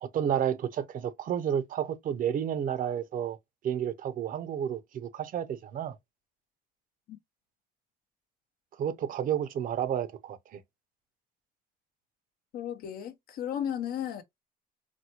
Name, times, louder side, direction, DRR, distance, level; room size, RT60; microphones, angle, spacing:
voice 1, 0.0-3.4 3.6-6.0 8.8-10.6, right 9 dB, 55° right, 0.6 m, -31 dB
voice 2, 12.5-14.2, left 9 dB, 65° left, 0.7 m, -34 dB
4.1 x 2.1 x 2.9 m
cardioid pair, 110°, 17 cm